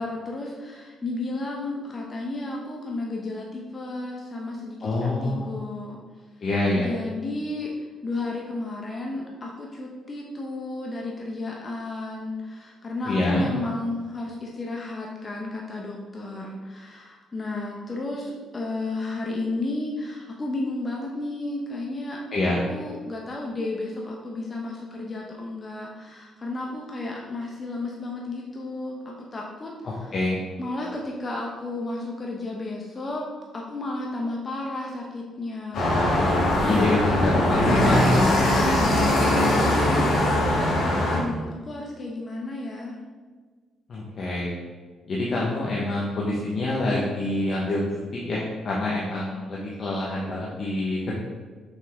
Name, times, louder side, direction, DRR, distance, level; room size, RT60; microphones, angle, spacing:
voice 1, 0.0-6.0 6.8-7.7 8.0-30.1 30.6-33.3 33.5-38.0 38.5-39.1 39.5-40.7 41.1-43.0, left 2 dB, 30° left, -1 dB, 0.9 m, -33 dB
voice 2, 4.8-5.6 6.4-6.9 13.1-13.5 22.3-22.6 29.8-30.4 36.6-38.2 43.9-44.5 45.1-47.8 48.1-51.2, left 2 dB, 50° left, -4 dB, 1.2 m, -26 dB
sound 1, 35.7-41.2, left 1 dB, 70° left, 2.0 m, -21 dB
6.1 x 5.5 x 3.6 m, 1.4 s
cardioid pair, 90°, 0 cm